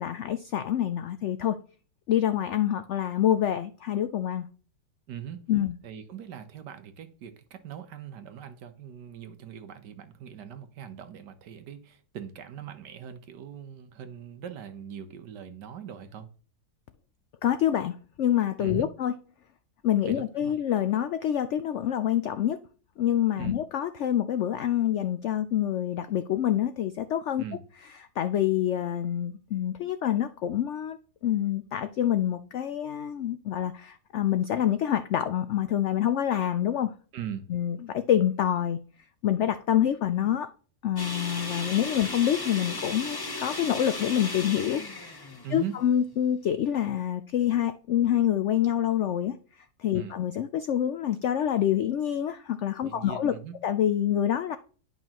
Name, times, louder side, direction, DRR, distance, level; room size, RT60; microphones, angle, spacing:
voice 1, 0.0-1.6 2.1-4.5 5.5-5.8 17.4-19.1 19.8-22.6 23.0-27.4 28.2-31.0 31.2-36.9 37.5-38.8 39.2-40.5 40.8-44.8 45.5-49.4 49.8-53.3 53.6-54.6, left 10 dB, 85° left, 0.6 m, -26 dB
voice 2, 5.1-5.5 5.8-16.3 18.6-18.9 20.1-20.5 23.4-23.6 27.4-27.6 37.1-37.5 45.4-45.8 49.9-50.1 52.8-53.6, right 9 dB, 85° right, 1.6 m, -41 dB
sound 1, 41.0-46.1, left 2 dB, 25° left, 0.4 m, -36 dB
11.0 x 5.4 x 3.0 m
omnidirectional pair, 1.8 m